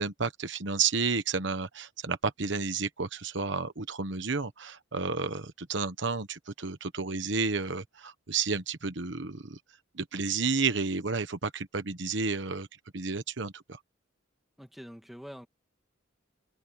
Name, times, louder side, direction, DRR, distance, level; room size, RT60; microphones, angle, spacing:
voice 1, 0.0-9.6 9.9-12.7 12.9-13.8, right 4 dB, 65° right, 1.1 m, -31 dB
voice 2, 14.6-15.5, equal, ahead, 2.1 m, -45 dB
open air
head